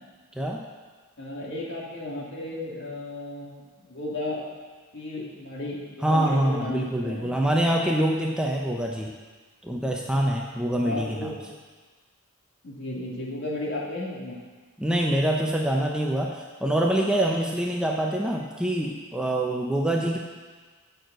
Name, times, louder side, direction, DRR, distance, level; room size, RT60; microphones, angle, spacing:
voice 1, 1.2-4.4 4.9-7.4 10.8-11.4 12.6-14.4 19.9-20.1, left 1 dB, 55° left, -3 dB, 2.2 m, -34 dB
voice 2, 6.0-9.1 9.6-11.3 14.8-20.2, right 1 dB, 5° right, -1 dB, 0.6 m, -25 dB
9.1 x 6.5 x 7.8 m, 1.4 s
head